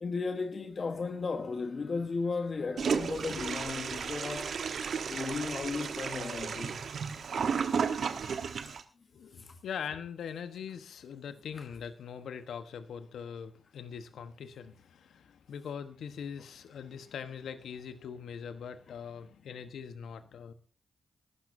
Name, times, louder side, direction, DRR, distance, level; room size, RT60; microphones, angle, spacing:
voice 1, 0.0-4.6 5.1-6.8 9.4-9.5 11.6-11.7, left 4 dB, 50° left, 1.3 m, -35 dB
Toilet flush, 2.8-8.8, right 6 dB, 65° right, 1.2 m, -33 dB
voice 2, 9.1-20.5, left 7 dB, 70° left, 1.2 m, -42 dB
22.0 x 12.0 x 2.7 m
hypercardioid pair, 40°, 0 cm